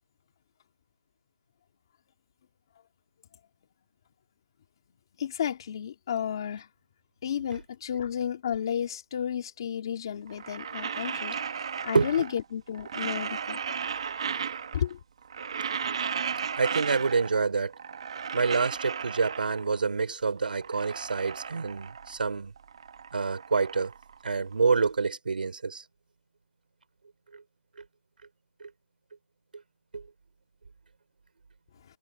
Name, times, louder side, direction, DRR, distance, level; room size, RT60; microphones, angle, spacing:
voice 1, 5.2-6.7 7.2-11.4 11.8-13.6 14.7-15.0, left 9 dB, 20° left, 2.9 m, -32 dB
sound 1, 10.3-12.4 12.7-14.9 15.2-17.5 17.7-19.8 20.3-22.3 22.6-24.8, right 6 dB, 25° right, 1.4 m, -35 dB
voice 2, 11.9-12.2 15.8-16.0 16.6-17.7 18.3-22.5 23.1-23.9 24.2-25.8 27.3-27.4 28.6-28.7 29.9-30.1, right 4 dB, 40° right, 4.7 m, -27 dB
hypercardioid pair, 180°, 7 cm